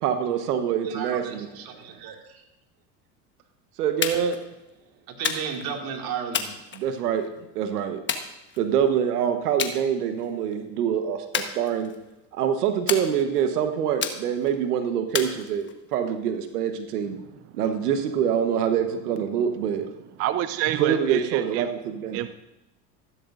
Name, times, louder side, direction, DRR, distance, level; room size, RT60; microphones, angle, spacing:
voice 1, 0.0-1.5 3.8-4.4 6.7-7.2 7.5-8.0 8.6-11.9 12.3-17.2 17.5-19.9 20.8-22.3, right 8 dB, 85° right, 7 dB, 1.2 m, -25 dB
voice 2, 0.8-2.4 5.1-6.5, right 7 dB, 50° right, 2 dB, 2.3 m, -34 dB
sound 1, 4.0-4.4 5.2-5.7 6.3-7.3 8.1-8.9 9.6-9.8 10.2-10.5 11.3-12.1 12.9-13.5 14.0-14.6 15.1-15.9, left 6 dB, 25° left, 1.2 m, -31 dB
voice 3, 20.2-21.7 22.1-22.3, right 12 dB, 35° right, 12 dB, 0.5 m, -27 dB
14.5 x 12.5 x 2.6 m, 0.95 s
hypercardioid pair, 100°, 45 cm